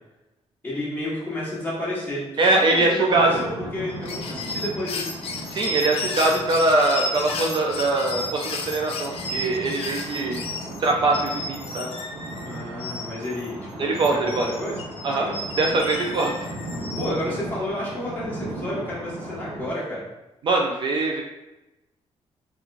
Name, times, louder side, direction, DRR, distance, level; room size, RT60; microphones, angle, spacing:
voice 1, 0.6-3.0 3.2-5.1 12.4-14.8 15.0-15.5 16.9-20.0, left 1 dB, 15° left, -7 dB, 1.3 m, -31 dB
voice 2, 2.4-3.4 5.5-10.4 10.8-11.9 13.8-14.5 15.0-15.3 15.6-16.3 20.4-21.2, right 2 dB, 45° right, 1 dB, 0.4 m, -22 dB
sound 1, 3.1-19.7, right 1 dB, 75° right, 0.9 m, -37 dB
sound 2, 3.9-13.5 14.0-17.1, left 2 dB, 60° left, 0.4 m, -33 dB
3.5 x 3.0 x 2.5 m, 1.0 s
wide cardioid pair, 155°, 11 cm